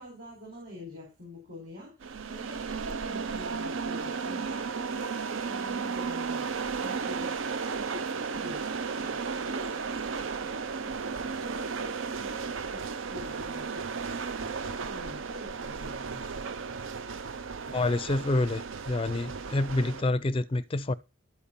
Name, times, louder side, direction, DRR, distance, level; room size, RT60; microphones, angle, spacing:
voice 1, 0.0-2.0 2.2-6.5 6.8-16.4, left 1 dB, 45° right, 4.5 m, -46 dB
sound 1, 2.0-20.0, right 5 dB, 65° right, 0.6 m, -34 dB
voice 2, 17.7-20.9, left 2 dB, 25° left, 0.4 m, -28 dB
13.0 x 4.7 x 6.9 m
head